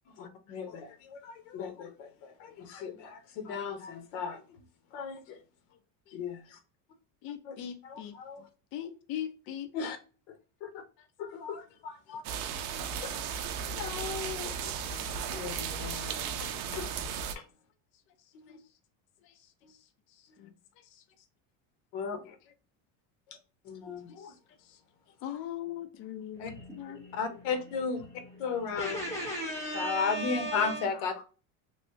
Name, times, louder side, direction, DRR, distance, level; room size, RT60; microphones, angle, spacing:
voice 1, 0.2-4.4 4.9-5.4 6.1-6.6 7.4-7.6 7.8-8.4 9.7-10.0 10.6-10.7 11.2-12.2 13.0-13.2 13.7-17.0 18.5-18.6 21.9-22.4 23.7-24.3 26.4-26.5 27.1-28.0 28.4-29.0 29.7-31.2, left 5 dB, 70° left, 0.9 m, -36 dB
voice 2, 7.2-8.1 8.7-9.7 19.2-19.3 20.4-20.5 24.7-24.8 25.2-27.0, left 11 dB, 35° left, 0.4 m, -40 dB
sound 1, 12.2-17.3, right 7 dB, 60° right, 0.5 m, -35 dB
voice 3, 26.3-30.9, right 1 dB, 10° left, 1.4 m, -38 dB
3.1 x 2.6 x 2.7 m
cardioid pair, 175°, 37 cm